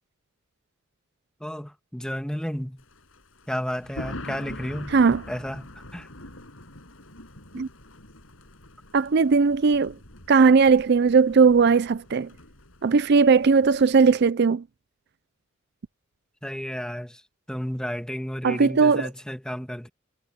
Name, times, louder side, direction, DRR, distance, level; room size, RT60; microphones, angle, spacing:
voice 1, 1.4-2.8 3.5-5.0 5.3-6.1 16.4-17.2 17.5-19.9, equal, 5° left, 1.9 m, -32 dB
Thunder, 2.8-14.3, left 1 dB, 75° left, 7.0 m, -44 dB
voice 2, 4.9-5.2 7.5-7.7 8.9-9.9 10.3-12.3 12.8-14.6 18.4-19.1, right 5 dB, 55° right, 0.5 m, -18 dB
head